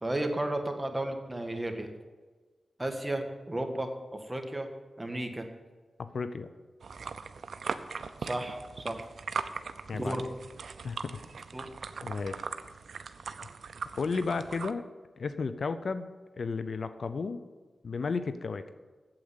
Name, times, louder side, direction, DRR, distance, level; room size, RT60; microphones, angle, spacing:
voice 1, 0.0-1.9 2.8-4.7 5.0-5.5 8.2-9.1 9.9-10.2 11.5-11.7, right 1 dB, 20° right, 5 dB, 1.6 m, -33 dB
voice 2, 6.0-6.5 9.9-10.2 10.8-11.2 12.0-12.4 14.0-14.8 15.2-16.1 16.4-17.4 17.8-18.6, left 4 dB, 70° left, 11 dB, 0.6 m, -33 dB
sound 1, 6.8-14.7, right 5 dB, 80° right, 0.5 m, -40 dB
8.7 x 7.8 x 8.1 m, 1.3 s
cardioid pair, 60°, 0 cm